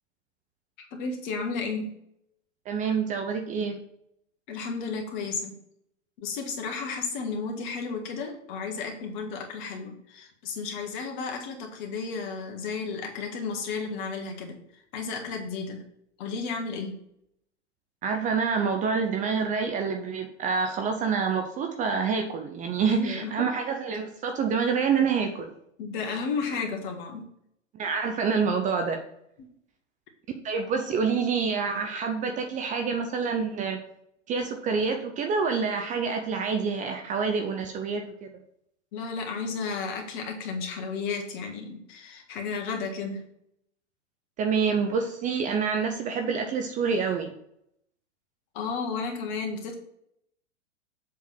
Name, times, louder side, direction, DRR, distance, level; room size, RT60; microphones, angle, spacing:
voice 1, 0.8-1.9 4.5-5.6 6.2-14.6 14.9-15.8 16.2-17.0 22.8-23.5 23.9-24.0 25.8-27.3 29.4-29.5 38.9-43.3 48.5-49.8, left 4 dB, 45° left, 2 dB, 1.8 m, -33 dB
voice 2, 2.7-3.8 18.0-25.5 27.7-29.0 30.4-33.8 34.3-38.3 44.4-47.3, right 5 dB, 20° right, 5 dB, 0.6 m, -27 dB
7.5 x 3.7 x 5.9 m, 0.74 s
hypercardioid pair, 115°, 36 cm